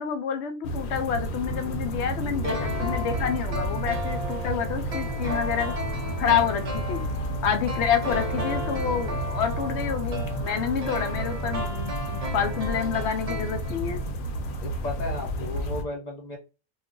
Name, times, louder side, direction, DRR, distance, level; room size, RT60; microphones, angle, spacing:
voice 1, 0.0-5.7 6.2-7.0 7.4-14.0, left 7 dB, 65° left, 7 dB, 0.8 m, -28 dB
sound 1, 0.6-15.8, right 1 dB, 85° left, 1.0 m, -31 dB
sound 2, 2.4-14.1 14.3-14.4, left 1 dB, 40° right, 0.6 m, -35 dB
voice 2, 14.6-16.4, left 2 dB, 35° left, 0 dB, 0.8 m, -34 dB
2.4 x 2.3 x 3.6 m, 0.31 s
omnidirectional pair, 1.4 m